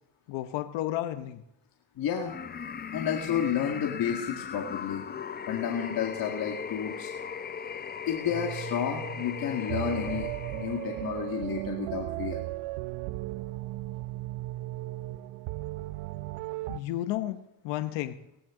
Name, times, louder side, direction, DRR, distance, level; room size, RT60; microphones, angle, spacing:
voice 1, 0.3-1.4 16.7-18.2, left 14 dB, 75° left, 10 dB, 1.0 m, -32 dB
voice 2, 2.0-2.4 2.9-5.0 5.5-7.1 8.1-12.4, left 8 dB, 50° left, 0 dB, 2.0 m, -31 dB
sound 1, 2.2-11.3, left 7 dB, 20° left, 0.6 m, -38 dB
Piano, 8.3-13.9, right 9 dB, 45° right, 5.3 m, -46 dB
sound 2, 9.7-16.8, right 18 dB, 75° right, 0.6 m, -35 dB
18.0 x 15.5 x 3.8 m, 0.84 s
supercardioid pair, 90°, 44 cm